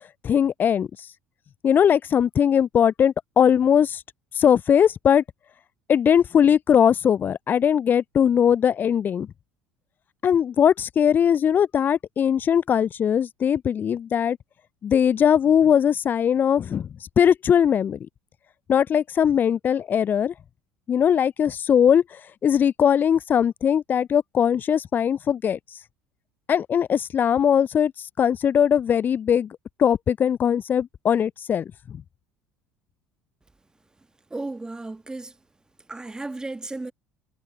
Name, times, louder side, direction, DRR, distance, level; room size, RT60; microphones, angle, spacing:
voice 1, 0.2-0.9 1.6-4.0 4.4-5.2 5.9-9.3 10.2-14.4 14.8-16.9 17.2-18.0 18.7-20.3 20.9-22.0 22.4-25.6 26.5-27.9 28.2-32.0, left 8 dB, 35° left, 0.4 m, -20 dB
voice 2, 34.3-35.3 35.9-36.9, right 2 dB, 10° right, 1.3 m, -34 dB
figure-of-eight pair, 65°, 6 cm